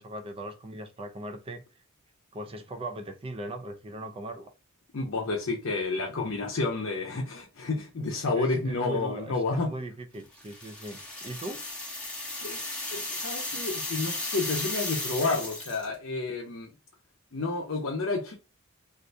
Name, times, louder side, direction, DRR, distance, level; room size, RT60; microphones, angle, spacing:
voice 1, 0.0-1.6 2.3-4.5 8.3-9.4 9.6-11.6, right 1 dB, 25° right, 0.4 m, -39 dB
voice 2, 4.9-9.7 12.4-12.6 12.9-16.7 17.3-18.3, left 3 dB, 60° left, 0.6 m, -30 dB
sound 1, 10.4-15.9, left 2 dB, 5° left, 0.7 m, -35 dB
2.7 x 2.5 x 3.1 m
head